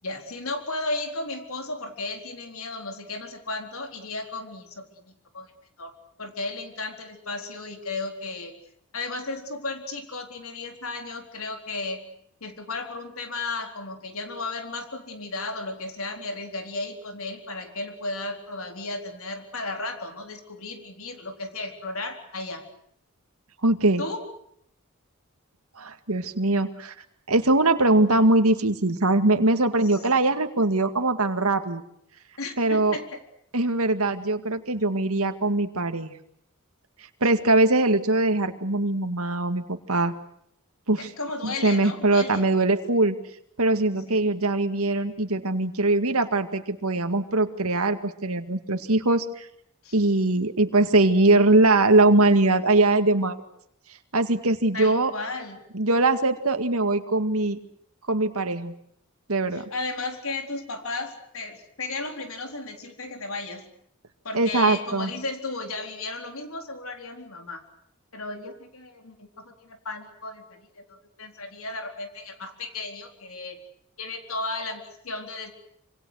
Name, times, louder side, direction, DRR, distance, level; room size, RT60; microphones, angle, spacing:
voice 1, 0.0-5.5 5.8-5.9 6.2-8.5 8.9-12.1 12.4-22.7 24.0-24.3 29.8-30.0 32.4-33.2 41.0-42.5 44.1-44.2 49.8-50.0 54.7-55.6 59.5-63.7 64.2-67.6 68.1-73.6 74.0-75.6, left 3 dB, 70° left, 5 dB, 4.1 m, -34 dB
voice 2, 23.6-24.0 25.8-26.9 27.3-31.8 32.6-33.0 33.5-36.1 37.2-40.1 40.9-41.1 41.4-43.2 43.6-49.5 49.9-53.4 54.1-55.1 55.7-57.6 58.1-58.7 59.3-59.6 64.3-65.1, right 2 dB, 80° right, 7 dB, 2.1 m, -22 dB
26.5 x 26.0 x 6.5 m, 0.71 s
head